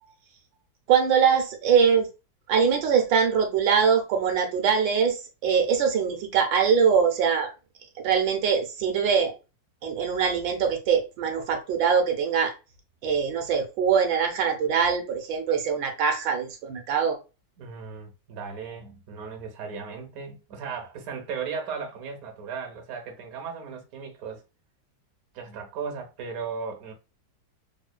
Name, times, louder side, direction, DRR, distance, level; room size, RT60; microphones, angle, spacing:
voice 1, 0.9-2.1 2.5-5.2 5.4-7.5 8.0-9.3 9.8-12.5 13.0-17.2, right 6 dB, 85° right, 1.5 m, -23 dB
voice 2, 17.6-24.4 25.3-26.9, right 5 dB, 60° right, 1.2 m, -36 dB
3.5 x 3.2 x 2.2 m
omnidirectional pair, 2.0 m